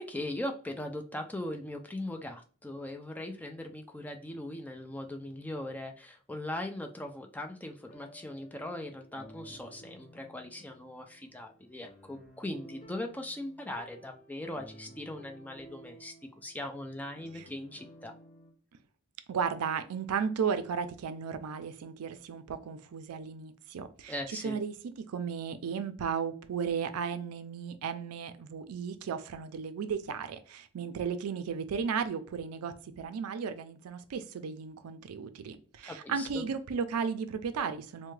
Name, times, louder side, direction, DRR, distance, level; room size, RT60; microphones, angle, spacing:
voice 1, 0.0-18.1 24.1-24.6 35.8-36.5, left 1 dB, 10° left, 0.3 m, -40 dB
sound 1, 7.8-18.5, equal, 40° left, 0.7 m, -54 dB
voice 2, 19.3-24.7 25.1-38.1, right 6 dB, 90° right, 0.4 m, -35 dB
3.3 x 2.1 x 3.1 m
head